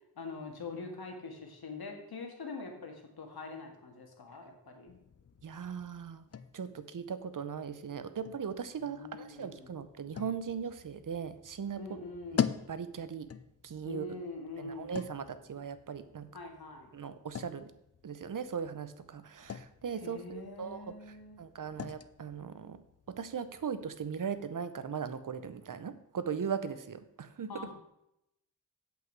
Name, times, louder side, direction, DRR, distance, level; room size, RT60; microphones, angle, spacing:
voice 1, 0.2-4.9 8.8-9.8 11.8-12.6 13.9-14.9 16.3-16.9 20.0-21.4 27.5-27.7, left 3 dB, 85° left, 3 dB, 2.0 m, -44 dB
sound 1, 4.9-24.4, left 8 dB, 45° left, 0.5 m, -44 dB
voice 2, 5.4-6.2 6.5-11.8 12.3-13.3 13.6-14.2 14.6-16.3 16.9-17.7 18.0-22.8 23.1-27.5, right 6 dB, 60° right, 12 dB, 0.8 m, -39 dB
8.3 x 8.2 x 4.7 m, 0.83 s
wide cardioid pair, 140°, 37 cm